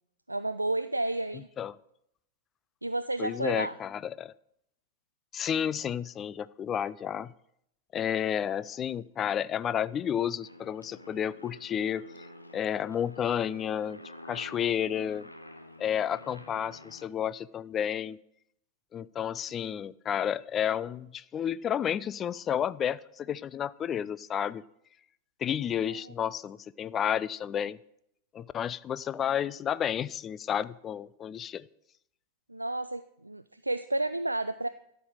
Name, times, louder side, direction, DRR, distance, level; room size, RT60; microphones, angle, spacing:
voice 1, 0.3-1.5 2.8-3.7 25.9-26.1 32.5-34.7, right 2 dB, 85° right, 11 dB, 0.3 m, -31 dB
voice 2, 3.2-4.3 5.3-7.3 7.9-12.0 12.5-14.0 14.3-15.3 15.8-18.2 18.9-24.6 25.4-27.8 28.3-31.7, left 9 dB, 25° left, 19 dB, 0.4 m, -31 dB
Aircraft, 10.4-17.1, left 1 dB, 85° left, 0.9 m, -49 dB
13.0 x 5.5 x 6.4 m, 0.76 s
figure-of-eight pair, 90°, 0 cm